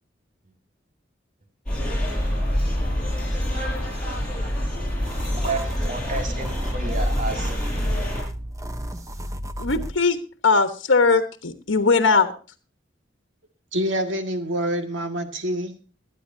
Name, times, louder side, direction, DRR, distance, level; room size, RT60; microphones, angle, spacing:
sound 1, 1.7-8.2, equal, 5° left, 6.3 m, -26 dB
sound 2, 5.0-10.0, equal, 15° right, 0.8 m, -33 dB
voice 1, 5.4-7.6, right 3 dB, 40° right, 4 dB, 2.0 m, -31 dB
voice 2, 9.6-10.2 10.4-12.3, left 4 dB, 75° left, 8 dB, 1.3 m, -19 dB
voice 3, 13.7-15.7, equal, 75° right, 6 dB, 1.9 m, -26 dB
22.0 x 9.9 x 2.8 m, 0.36 s
head